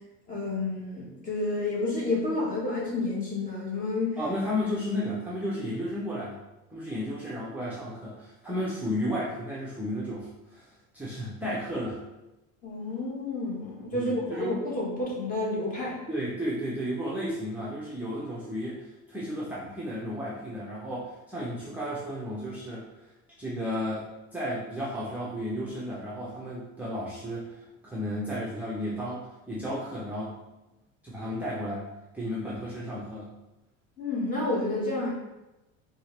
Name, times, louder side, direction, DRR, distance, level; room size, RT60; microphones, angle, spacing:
voice 1, 0.3-4.2 12.6-16.0 34.0-35.1, left 2 dB, 25° left, -5 dB, 1.3 m, -30 dB
voice 2, 4.2-6.4 6.7-10.7 10.9-12.0 13.9-14.6 16.1-22.9 23.4-24.1 24.3-30.3 31.0-31.9 32.1-33.3, equal, 5° right, -7 dB, 0.5 m, -33 dB
4.4 x 2.8 x 3.2 m, 0.99 s
cardioid pair, 150°, 32 cm